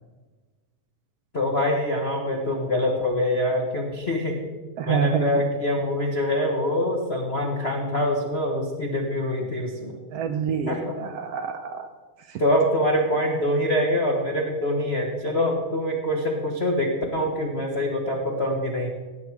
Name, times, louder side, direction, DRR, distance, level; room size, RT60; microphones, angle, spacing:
voice 1, 1.3-4.4 4.9-9.9 10.7-11.0 12.4-18.9, left 1 dB, 60° left, -1 dB, 0.6 m, -24 dB
voice 2, 4.8-5.4 10.1-11.9 12.3-12.4, right 6 dB, 75° right, 6 dB, 1.5 m, -27 dB
17.5 x 7.6 x 4.7 m, 1.4 s
omnidirectional pair, 3.5 m